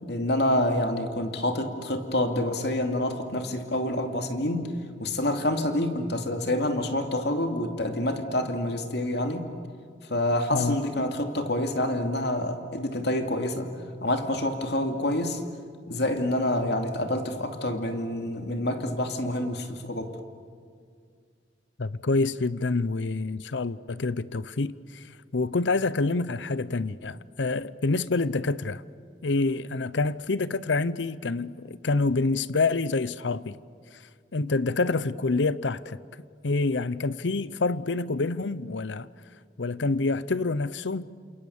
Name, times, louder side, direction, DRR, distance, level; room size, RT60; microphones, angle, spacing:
voice 1, 0.0-4.7 5.0-9.5 10.1-13.7 14.0-15.4 15.9-20.1, left 1 dB, 65° left, 2.6 m, -27 dB
voice 2, 21.8-25.0 25.3-28.8 29.2-33.6 34.3-36.0 36.4-39.1 39.6-41.0, left 3 dB, 80° left, 0.7 m, -27 dB
29.5 x 27.5 x 7.2 m
head